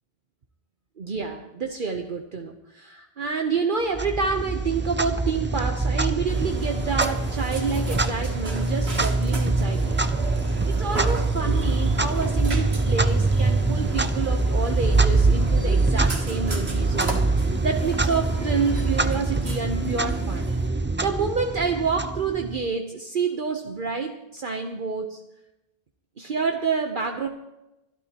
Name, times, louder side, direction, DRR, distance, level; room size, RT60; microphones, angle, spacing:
voice 1, 1.0-10.1 10.7-20.5 21.0-25.2 26.2-27.3, right 5 dB, 55° right, 4 dB, 1.1 m, -28 dB
Clock, 3.9-22.7, right 3 dB, 15° right, 0.4 m, -24 dB
Burping eructation, 6.2-20.7, right 2 dB, 85° right, 2.1 m, -36 dB
23.5 x 12.5 x 2.9 m, 0.93 s
omnidirectional pair, 1.0 m